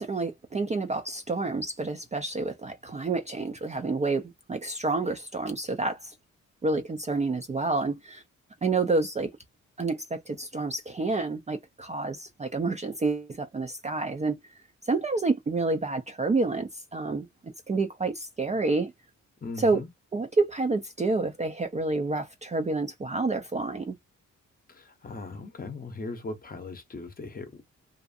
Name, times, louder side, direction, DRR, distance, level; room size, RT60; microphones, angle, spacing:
voice 1, 0.0-6.1 6.6-8.2 8.6-9.3 9.8-14.4 14.8-18.9 19.6-19.8 20.1-24.0, right 3 dB, 25° right, 0.4 m, -29 dB
voice 2, 19.4-19.9 24.7-27.7, left 3 dB, 30° left, 0.7 m, -39 dB
2.6 x 2.4 x 2.4 m
wide cardioid pair, 125°, 30 cm